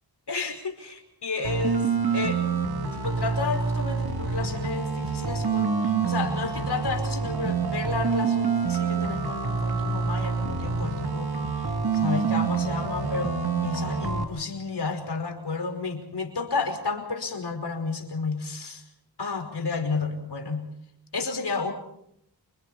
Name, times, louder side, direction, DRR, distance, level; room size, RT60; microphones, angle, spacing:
voice 1, 0.3-2.4 2.9-18.8 19.2-20.7 21.1-21.7, left 4 dB, 75° left, 4 dB, 5.2 m, -32 dB
sound 1, 1.4-14.2, right 5 dB, 65° right, 3.0 m, -27 dB
28.5 x 27.5 x 4.3 m, 0.73 s
wide cardioid pair, 70°, 40 cm